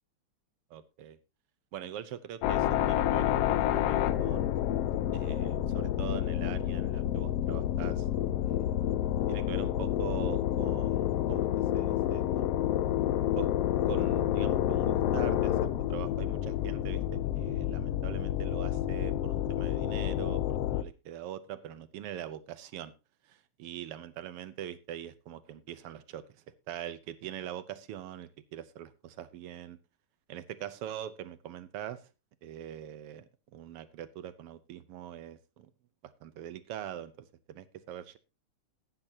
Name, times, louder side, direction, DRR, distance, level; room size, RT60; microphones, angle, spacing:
voice 1, 0.7-1.2 1.7-4.5 5.1-8.1 8.4-8.5 9.3-12.7 13.4-13.5 13.9-22.9 23.2-29.8 30.3-32.1 32.4-33.2 33.5-35.7 36.0-38.2, right 10 dB, 70° right, 13 dB, 1.4 m, -43 dB
sound 1, 2.4-20.8, left 12 dB, 75° left, 1.4 m, -29 dB
sound 2, 4.1-4.9 5.5-5.9 6.5-6.8 7.9-8.2 10.2-10.6, right 2 dB, 50° right, 1.7 m, -50 dB
16.0 x 10.0 x 2.8 m, 0.28 s
omnidirectional pair, 3.4 m